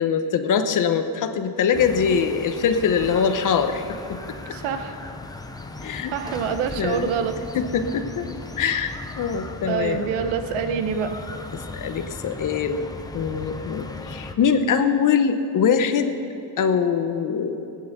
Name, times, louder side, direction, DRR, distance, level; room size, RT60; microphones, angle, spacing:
voice 1, 0.0-3.8 4.1-4.2 5.8-6.1 6.8-7.1 7.5-8.3 8.6-10.0 11.5-12.8 13.1-16.1 16.6-17.6, left 6 dB, 40° left, 8 dB, 0.8 m, -23 dB
sound 1, 1.7-14.3, left 2 dB, 10° left, 0.5 m, -37 dB
voice 2, 4.5-5.0 6.1-7.4 9.7-11.2, right 7 dB, 75° right, 8 dB, 1.1 m, -26 dB
16.0 x 9.5 x 6.7 m, 2.7 s
cardioid pair, 155°, 48 cm